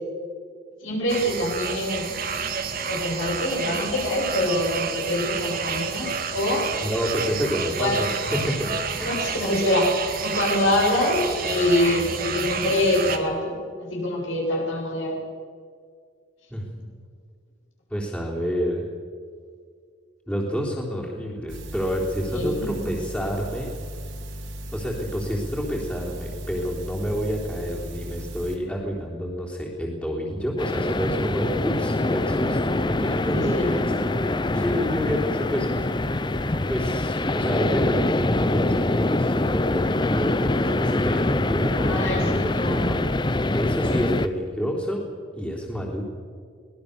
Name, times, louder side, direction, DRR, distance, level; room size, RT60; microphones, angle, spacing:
voice 1, 0.8-2.1 2.8-6.7 7.8-8.0 9.0-15.2 22.3-22.9 33.3-33.7 41.8-42.9, left 1 dB, 75° left, -2 dB, 7.8 m, -25 dB
sound 1, 1.1-13.2, right 5 dB, 45° right, 1.9 m, -29 dB
voice 2, 6.8-8.7 9.0-9.1 16.5-16.7 17.9-18.9 20.3-23.7 24.7-34.2 34.5-35.9 36.7-45.1 45.3-46.0, equal, 5° left, -3 dB, 3.6 m, -29 dB
sound 2, 21.5-28.6, equal, 70° right, 3.4 m, -36 dB
sound 3, 30.6-44.3, left 2 dB, 25° left, 0.6 m, -24 dB
24.5 x 19.0 x 6.9 m, 2.1 s
head